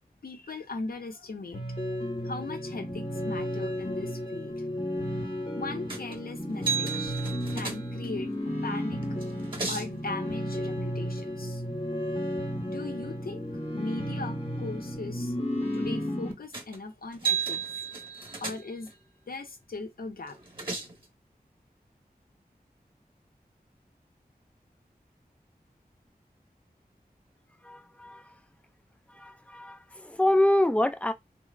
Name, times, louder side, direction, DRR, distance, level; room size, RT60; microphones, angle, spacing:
voice 1, 0.2-2.0 2.2-4.6 5.6-7.2 7.5-8.3 8.6-9.0 9.7-11.6 12.7-15.3 15.7-17.6 18.1-18.9 19.3-20.4, left 3 dB, 65° left, 0.6 m, -38 dB
sound 1, 1.5-16.3, equal, 35° left, 1.0 m, -33 dB
sound 2, 5.9-6.2 6.6-8.2 9.0-10.0 16.5-16.8 17.1-19.0 20.3-21.0, right 5 dB, 30° right, 1.1 m, -33 dB
voice 2, 27.6-28.3 29.1-31.1, left 1 dB, 10° left, 0.3 m, -26 dB
3.1 x 2.0 x 2.3 m
wide cardioid pair, 45°, 16 cm